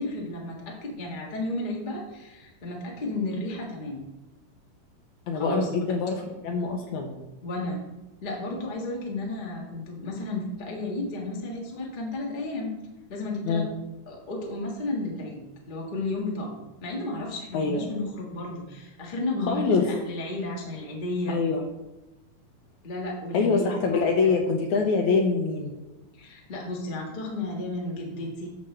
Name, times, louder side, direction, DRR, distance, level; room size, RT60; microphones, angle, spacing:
voice 1, 0.0-4.1 5.3-5.7 7.4-7.8 8.2-12.7 13.1-13.7 14.1-15.4 15.7-21.4 22.8-23.7 24.2-24.3 26.1-28.5, left 2 dB, 55° left, -2 dB, 0.5 m, -33 dB
voice 2, 5.3-7.2 13.5-13.7 17.5-17.9 19.4-20.0 21.3-21.6 23.3-25.8, left 4 dB, 75° left, 3 dB, 1.8 m, -25 dB
9.3 x 7.3 x 3.3 m, 1.0 s
omnidirectional pair, 4.1 m